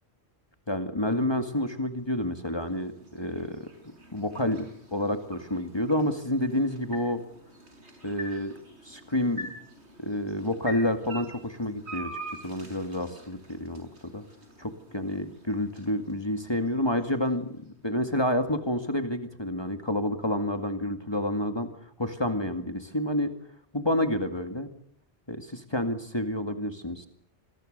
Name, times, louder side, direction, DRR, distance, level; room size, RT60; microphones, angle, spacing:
voice 1, 0.7-3.7 4.1-7.2 8.0-8.5 8.8-9.5 10.0-12.1 12.4-13.9 14.1-14.2 14.6-21.7 22.0-23.3 23.7-24.7 25.3-27.1, left 1 dB, 25° left, 7 dB, 2.2 m, -29 dB
sound 1, 1.9-18.0, equal, 80° right, 6.3 m, -46 dB
27.0 x 21.0 x 6.8 m, 0.63 s
omnidirectional pair, 1.1 m